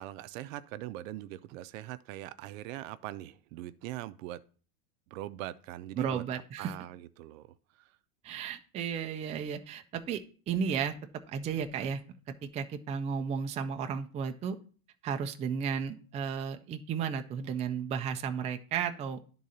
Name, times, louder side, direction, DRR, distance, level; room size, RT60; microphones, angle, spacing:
voice 1, 0.0-4.4 5.1-6.2 6.6-7.9, right 14 dB, 65° right, 0.6 m, -41 dB
voice 2, 6.0-6.7 8.2-10.2 10.5-10.9 11.3-12.0 12.4-14.6 15.0-19.2, right 7 dB, 15° right, 0.3 m, -33 dB
10.0 x 3.8 x 4.0 m
supercardioid pair, 125°, 43 cm